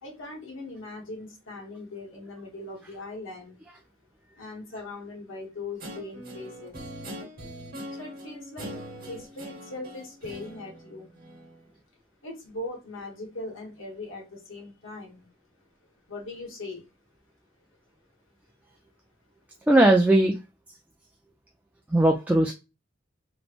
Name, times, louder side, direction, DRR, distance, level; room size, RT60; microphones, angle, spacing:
voice 1, 0.0-3.6 4.4-6.8 7.9-8.7 9.1-11.1 12.2-15.3 16.1-16.9, left 2 dB, 75° left, -1 dB, 1.4 m, -40 dB
Guitar, 5.8-11.6, equal, 45° right, 1.1 m, -42 dB
voice 2, 19.7-20.4 21.9-22.5, right 1 dB, 5° right, 1 dB, 0.4 m, -19 dB
3.2 x 3.1 x 2.4 m, 0.27 s
head